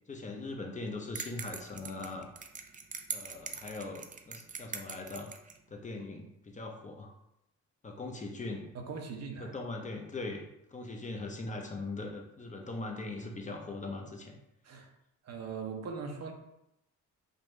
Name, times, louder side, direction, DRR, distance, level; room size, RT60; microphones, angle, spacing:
voice 1, 0.1-2.3 3.1-5.3 5.7-7.1 7.8-8.7 9.4-14.4, left 2 dB, 25° left, 2 dB, 0.7 m, -40 dB
sound 1, 1.2-5.6, right 5 dB, 30° right, 0.4 m, -42 dB
voice 2, 8.7-9.5 14.6-14.9 15.2-16.3, right 5 dB, 55° right, 3 dB, 0.8 m, -40 dB
5.2 x 2.4 x 3.1 m, 0.84 s
cardioid pair, 90°, 30 cm